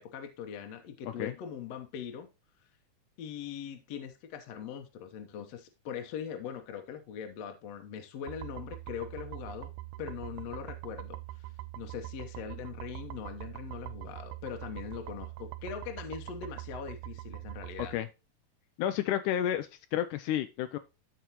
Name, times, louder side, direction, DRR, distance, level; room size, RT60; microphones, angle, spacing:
voice 1, 0.0-2.3 3.2-9.7 10.0-11.5 11.8-17.9, left 8 dB, 65° left, 5 dB, 1.9 m, -41 dB
sound 1, 8.3-17.9, right 18 dB, 85° right, 2.2 m, -43 dB
voice 2, 18.8-20.8, left 11 dB, 80° left, 9 dB, 2.1 m, -31 dB
13.5 x 4.8 x 2.9 m, 0.27 s
omnidirectional pair, 3.6 m